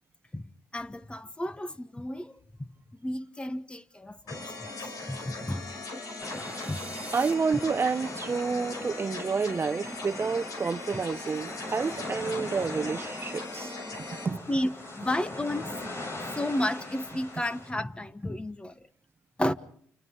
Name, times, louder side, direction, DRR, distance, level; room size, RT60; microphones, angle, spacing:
voice 1, 0.3-2.3 2.6-2.7 3.0-4.5 4.8-5.6 6.7-6.8 8.8-8.9 14.3-14.7 15.0-15.7 16.4-18.7 19.4-19.5, left 1 dB, 15° left, 1.3 m, -32 dB
sound 1, 4.3-14.3, left 2 dB, 65° left, 5.2 m, -39 dB
sound 2, 5.3-7.3, right 2 dB, 15° right, 3.0 m, -45 dB
sound 3, 6.2-17.7, left 2 dB, 45° left, 7.8 m, -41 dB
voice 2, 7.1-14.4, right 5 dB, 40° right, 0.9 m, -29 dB
29.5 x 28.0 x 3.9 m
supercardioid pair, 55°, 6 cm